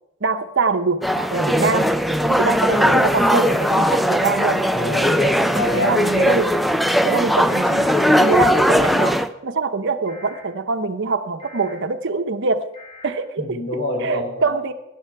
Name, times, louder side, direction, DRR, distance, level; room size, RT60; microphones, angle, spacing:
voice 1, 0.2-1.9 2.3-4.6 5.7-6.5 7.0-12.6 13.0-14.7, right 4 dB, 65° right, 9 dB, 0.9 m, -24 dB
sound 1, 1.0-9.3, equal, ahead, 0.5 m, -18 dB
sound 2, 2.6-4.0 5.0-6.3 7.3-8.7 10.1-10.4 11.4-11.7 12.7-13.1, left 3 dB, 25° left, 5.2 m, -42 dB
voice 2, 4.7-5.9 13.4-14.5, left 1 dB, 65° left, -1 dB, 6.1 m, -26 dB
17.5 x 11.5 x 4.6 m, 0.92 s
head